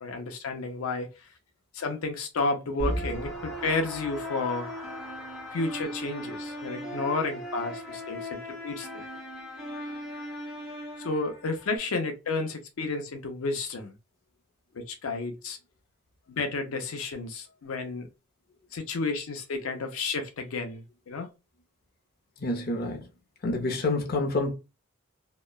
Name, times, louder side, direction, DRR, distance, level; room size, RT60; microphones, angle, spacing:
voice 1, 0.0-1.3 1.7-4.7 5.5-8.9 11.0-13.9 14.7-15.6 16.3-18.1 18.7-21.3, left 3 dB, 85° left, 0.5 m, -31 dB
sound 1, 2.8-11.8, equal, ahead, 0.9 m, -37 dB
voice 2, 22.4-23.0 23.4-24.5, left 2 dB, 45° left, 0.6 m, -27 dB
2.9 x 2.1 x 2.2 m
head